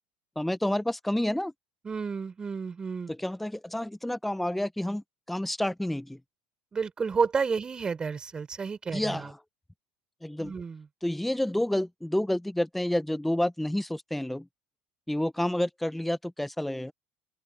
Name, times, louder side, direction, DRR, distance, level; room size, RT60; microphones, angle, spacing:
voice 1, 0.4-1.5 3.1-6.2 8.9-9.4 10.2-10.5 11.0-14.5 15.1-16.9, left 1 dB, 5° left, 1.1 m, -29 dB
voice 2, 1.8-3.1 6.7-9.3 10.4-10.9, right 5 dB, 25° right, 4.5 m, -31 dB
open air
supercardioid pair, 95°, 3 cm